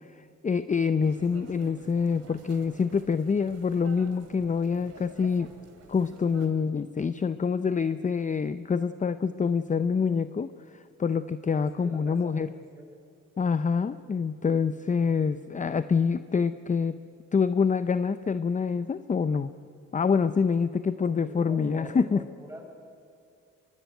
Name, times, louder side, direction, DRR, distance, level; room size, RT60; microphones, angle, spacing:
voice 1, 0.0-5.5 5.9-12.5 13.4-17.0 17.3-19.5 19.9-22.2, left 5 dB, 25° left, 13 dB, 0.7 m, -26 dB
sound 1, 1.0-6.5, right 5 dB, 55° right, 3.1 m, -51 dB
voice 2, 11.5-12.9 21.0-22.7, equal, 10° right, 2 dB, 6.9 m, -46 dB
24.0 x 22.5 x 9.2 m, 2.4 s
cardioid pair, 90°, 30 cm